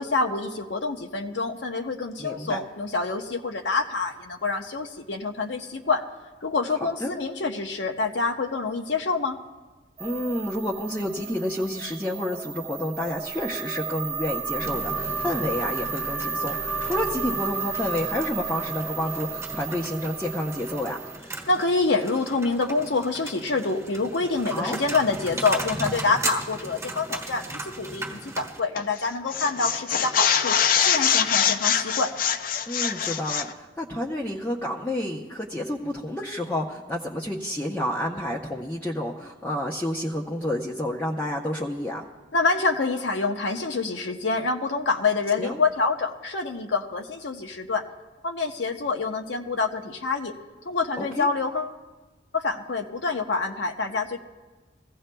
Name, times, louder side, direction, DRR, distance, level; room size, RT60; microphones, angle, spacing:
voice 1, 0.0-6.0 6.4-9.4 21.5-30.5 30.9-32.1 42.3-47.8 48.2-50.3 50.7-51.8 52.3-54.2, left 3 dB, 80° left, 4 dB, 0.8 m, -26 dB
voice 2, 2.2-2.6 7.0-7.1 10.0-21.0 24.5-24.8 32.7-42.0 45.4-45.6 51.0-51.3, left 1 dB, 10° left, -2 dB, 0.7 m, -30 dB
sound 1, 10.0-21.2, right 5 dB, 45° right, 1.0 m, -33 dB
sound 2, 14.6-28.6, right 2 dB, 15° right, 1.3 m, -37 dB
sound 3, 28.8-29.0 29.3-33.5, left 8 dB, 50° left, 0.5 m, -23 dB
22.0 x 15.5 x 2.2 m, 1.2 s
head